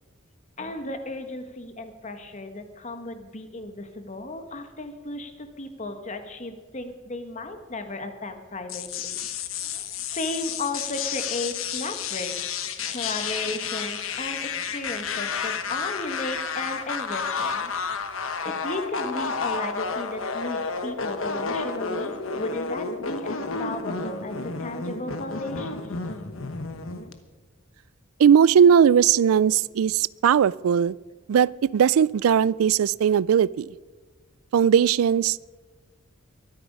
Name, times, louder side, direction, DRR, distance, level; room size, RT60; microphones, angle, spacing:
voice 1, 0.6-9.2 9.6-12.3 12.9-17.7 18.4-25.9, left 2 dB, 35° left, 7 dB, 1.4 m, -35 dB
sound 1, 8.7-27.1, left 5 dB, 70° left, 1.1 m, -31 dB
voice 2, 28.2-31.0 31.3-33.7 34.5-35.4, right 8 dB, 80° right, 23 dB, 0.3 m, -19 dB
23.5 x 8.9 x 5.4 m, 1.3 s
head